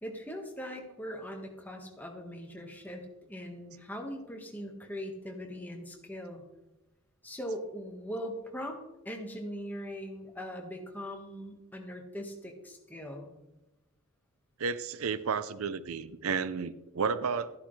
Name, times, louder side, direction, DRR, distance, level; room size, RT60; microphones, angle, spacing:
voice 1, 0.0-6.4 7.2-13.3, equal, 10° left, 2 dB, 1.4 m, -41 dB
voice 2, 14.6-17.5, right 5 dB, 80° right, 14 dB, 0.5 m, -32 dB
13.5 x 10.5 x 3.2 m, 0.99 s
head